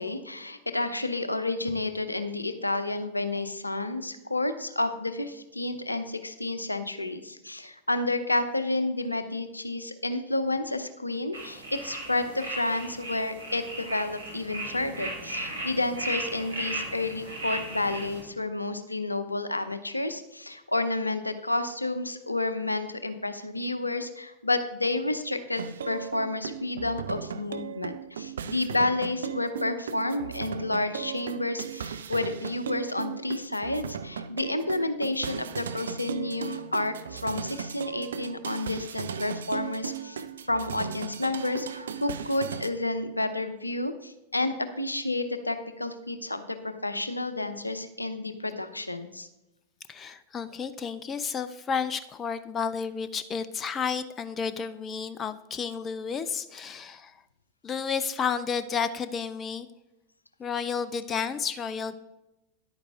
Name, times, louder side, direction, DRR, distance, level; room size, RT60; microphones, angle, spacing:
voice 1, 0.0-49.3, left 2 dB, 85° left, 11 dB, 0.7 m, -30 dB
sound 1, 11.3-18.2, right 1 dB, 85° right, 2.5 m, -36 dB
sound 2, 25.6-42.7, right 7 dB, 65° right, 0.5 m, -37 dB
voice 2, 49.9-57.2 57.6-59.7 60.4-61.9, left 6 dB, 25° left, 13 dB, 0.5 m, -31 dB
10.5 x 8.8 x 3.5 m, 0.94 s
figure-of-eight pair, 90°, 0 cm